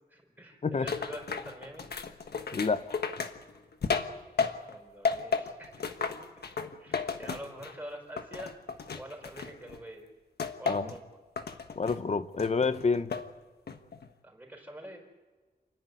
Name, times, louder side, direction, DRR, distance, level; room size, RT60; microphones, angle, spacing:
voice 1, 0.1-1.9 4.4-6.1 6.8-8.6 9.0-10.1 10.6-11.1 14.2-15.0, right 1 dB, 10° right, 4.9 m, -46 dB
sound 1, 0.9-4.8 5.1-7.8 8.2-9.8 10.4-11.0 11.4-12.0 12.4-13.3 13.7-14.1, left 5 dB, 80° left, 1.3 m, -34 dB
voice 2, 2.5-3.0 10.7-10.9 11.8-13.1, left 4 dB, 45° left, 0.8 m, -28 dB
29.0 x 10.5 x 9.5 m
wide cardioid pair, 120°, 16 cm